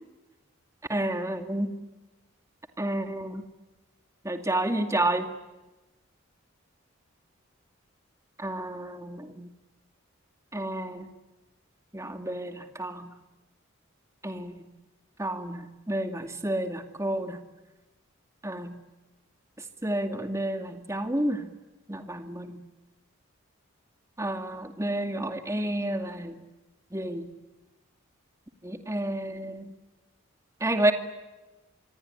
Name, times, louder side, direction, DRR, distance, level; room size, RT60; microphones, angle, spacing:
voice 1, 0.9-1.7 2.8-3.4 4.2-5.3 8.4-9.5 10.5-11.1 11.9-13.1 14.2-14.6 15.2-15.6 15.9-17.4 18.4-18.7 19.8-21.5 21.9-22.6 24.2-26.3 26.9-27.3 28.6-29.7 30.6-30.9, right 1 dB, 15° right, 6 dB, 2.3 m, -30 dB
26.5 x 22.5 x 9.9 m, 1.1 s
head